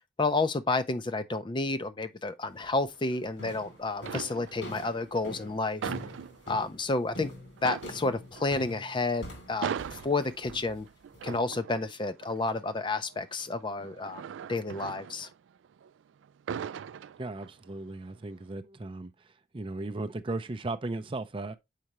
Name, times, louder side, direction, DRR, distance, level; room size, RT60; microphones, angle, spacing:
voice 1, 0.2-5.9 6.5-7.3 7.6-10.9 11.2-14.2 14.5-15.3, left 3 dB, 25° left, 0.5 m, -30 dB
sound 1, 2.5-2.9 3.4-11.4, left 1 dB, 70° left, 2.7 m, -45 dB
sound 2, 2.9-3.6 4.0-4.8 5.2-6.9 7.2-7.3 7.6-15.9 16.2-17.7 18.1-18.4, right 8 dB, 90° right, 0.3 m, -40 dB
voice 2, 17.2-19.1 19.5-21.5, right 2 dB, 30° right, 0.5 m, -36 dB
6.6 x 4.8 x 3.0 m
head